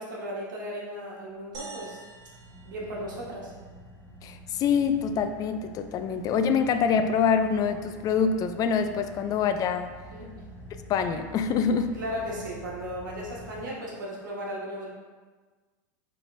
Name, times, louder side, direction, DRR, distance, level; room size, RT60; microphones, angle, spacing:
voice 1, 0.0-2.0 2.6-3.5 10.1-10.3 11.9-14.9, equal, 85° right, -3 dB, 1.2 m, -36 dB
Car / Idling, 1.3-14.3, equal, 20° left, 1.1 m, -47 dB
sound 1, 1.5-4.0, right 4 dB, 35° right, 1.1 m, -47 dB
voice 2, 4.2-9.9 10.9-11.9, left 6 dB, 35° left, 8 dB, 0.3 m, -25 dB
5.1 x 3.3 x 2.6 m, 1.4 s
hypercardioid pair, 100°, 10 cm